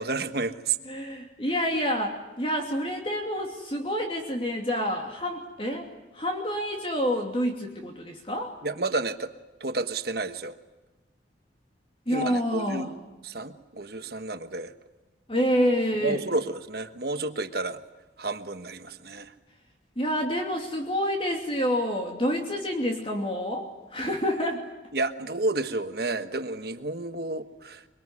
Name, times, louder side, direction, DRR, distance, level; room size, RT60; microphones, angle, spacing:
voice 1, 0.0-0.8 8.6-9.3 9.6-10.6 12.1-14.7 16.0-17.8 18.2-19.3 24.9-27.9, right 3 dB, 55° right, 9 dB, 1.3 m, -31 dB
voice 2, 0.9-5.9 6.1-8.5 12.1-12.9 15.3-16.2 20.0-24.6, equal, 30° left, 2 dB, 2.8 m, -28 dB
24.0 x 24.0 x 9.8 m, 1.1 s
head